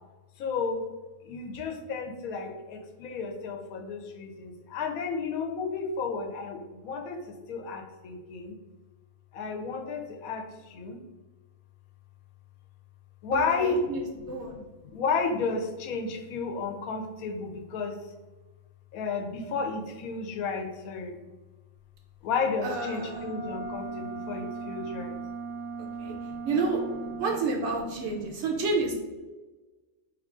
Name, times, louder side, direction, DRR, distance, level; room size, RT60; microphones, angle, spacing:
voice 1, 0.4-0.8 1.2-8.5 9.3-11.0 13.2-18.0 18.9-21.2 22.2-25.1 28.2-28.4, left 4 dB, 85° left, 3 dB, 1.1 m, -32 dB
voice 2, 13.3-14.5 22.6-23.3 25.8-26.1 26.4-26.8 27.2-28.9, right 3 dB, 65° right, 1 dB, 0.8 m, -30 dB
sound 1, 22.9-27.3, right 4 dB, 45° left, 0.9 m, -38 dB
3.2 x 2.4 x 3.6 m, 1.2 s
omnidirectional pair, 1.5 m